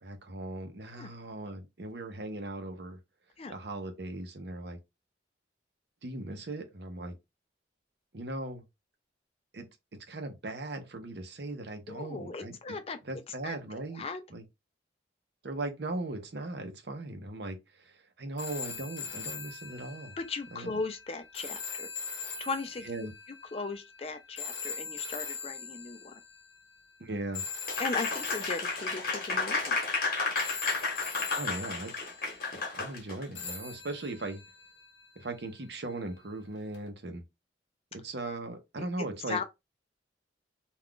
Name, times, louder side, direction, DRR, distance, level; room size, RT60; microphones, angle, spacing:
voice 1, 0.0-3.0 3.5-4.8 6.0-7.1 8.1-8.6 9.5-9.6 10.1-12.6 13.0-14.0 14.3-14.4 15.4-20.1 20.5-20.7 22.8-23.1 27.0-27.5 31.4-31.9 32.5-34.4 35.2-37.2 37.9-39.4, right 2 dB, 60° right, 0.7 m, -38 dB
voice 2, 11.9-13.0 13.4-14.2 20.2-21.9 22.4-22.9 23.5-26.2 27.8-29.8 38.8-39.4, left 3 dB, 30° left, 0.4 m, -37 dB
sound 1, 18.4-26.6 27.3-30.0 30.4-32.5 33.3-35.6 36.7-36.9, left 5 dB, 75° left, 0.8 m, -42 dB
Applause, 27.7-33.2, left 3 dB, 50° left, 1.0 m, -32 dB
2.4 x 2.3 x 3.6 m
head